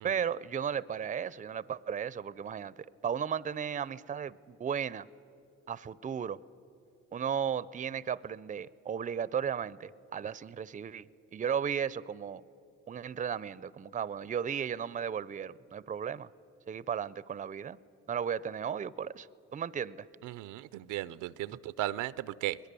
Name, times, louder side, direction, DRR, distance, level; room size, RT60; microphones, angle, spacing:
voice 1, 0.0-2.7 3.0-5.1 5.7-6.4 7.1-12.4 12.9-16.3 16.7-17.8 18.1-19.3 19.5-20.1, right 8 dB, 25° right, 19 dB, 0.5 m, -35 dB
voice 2, 20.2-22.6, right 15 dB, 85° right, 17 dB, 0.5 m, -36 dB
22.0 x 21.0 x 6.8 m, 2.8 s
cardioid pair, 90°, 30 cm